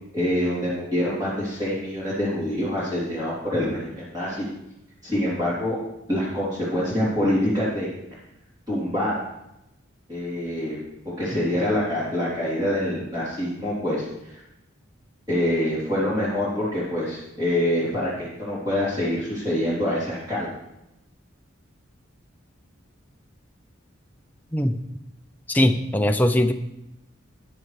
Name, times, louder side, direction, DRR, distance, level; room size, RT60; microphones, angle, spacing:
voice 1, 0.1-4.4 5.0-5.8 6.1-7.9 8.7-9.2 10.1-10.8 11.0-14.4 15.3-20.5, left 1 dB, 20° right, -9 dB, 3.2 m, -25 dB
voice 2, 24.5-24.8 25.5-26.5, left 1 dB, 10° left, 6 dB, 0.4 m, -20 dB
13.5 x 9.6 x 3.2 m, 0.89 s
head